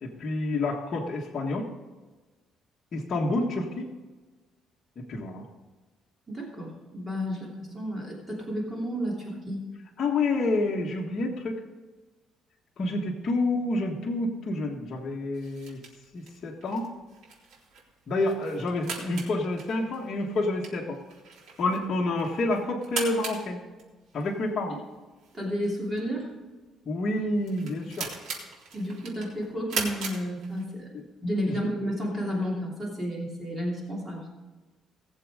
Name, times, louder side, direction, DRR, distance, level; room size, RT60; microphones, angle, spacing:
voice 1, 0.0-1.7 2.9-3.9 4.9-5.5 10.0-11.6 12.8-15.8 16.1-16.9 18.1-21.0 21.6-23.6 24.1-24.8 26.8-28.1 30.9-31.0 31.5-31.6, left 2 dB, 35° left, -3 dB, 1.5 m, -28 dB
voice 2, 6.3-9.6 25.3-26.3 28.7-30.9 31.2-34.3, equal, 20° right, -3 dB, 3.0 m, -31 dB
sound 1, 15.3-31.0, right 4 dB, 75° right, 3.7 m, -40 dB
18.5 x 7.4 x 4.9 m, 1.3 s
cardioid pair, 155°, 0 cm